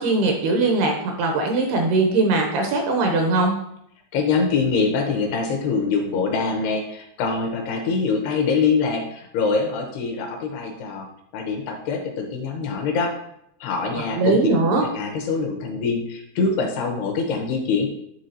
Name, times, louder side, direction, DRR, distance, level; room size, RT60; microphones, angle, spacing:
voice 1, 0.0-3.5 14.2-14.8, right 3 dB, 80° right, 2 dB, 2.4 m, -20 dB
voice 2, 4.1-11.1 11.3-13.1 13.6-14.4 14.8-17.9, left 4 dB, 80° left, 1 dB, 2.7 m, -24 dB
10.5 x 3.6 x 2.7 m, 0.74 s
omnidirectional pair, 5.0 m